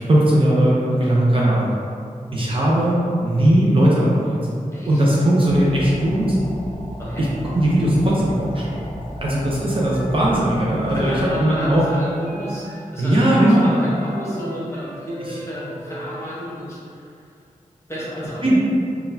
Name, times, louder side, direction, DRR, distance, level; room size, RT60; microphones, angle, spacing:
voice 1, 0.0-1.7 2.3-4.4 4.9-6.4 7.2-7.3 7.5-8.9 9.2-11.8 13.0-13.7 18.4-18.6, right 1 dB, 40° right, -7 dB, 0.6 m, -18 dB
voice 2, 4.7-5.0 7.0-7.3 10.9-17.4 17.9-18.5, equal, 20° left, -9 dB, 1.1 m, -31 dB
sound 1, 5.5-11.4, equal, 40° left, 0.8 m, -34 dB
Wind instrument woodwind instrument, 9.9-12.8 13.1-16.3, equal, 85° right, 0.7 m, -39 dB
3.9 x 2.3 x 2.6 m, 2.3 s
wide cardioid pair, 85°, 14 cm